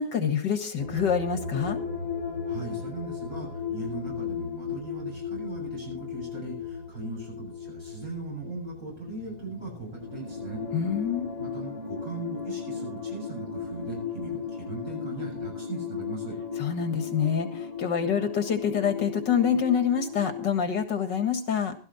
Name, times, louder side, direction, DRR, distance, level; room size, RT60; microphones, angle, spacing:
voice 1, 0.0-1.8 10.7-11.3 16.6-21.7, left 7 dB, 75° left, 8 dB, 2.3 m, -26 dB
sound 1, 0.8-20.5, left 6 dB, 20° right, 2.2 m, -36 dB
voice 2, 2.2-10.6 11.4-16.4, right 3 dB, 50° right, -1 dB, 7.8 m, -39 dB
15.0 x 13.0 x 4.2 m, 0.37 s
omnidirectional pair, 1.9 m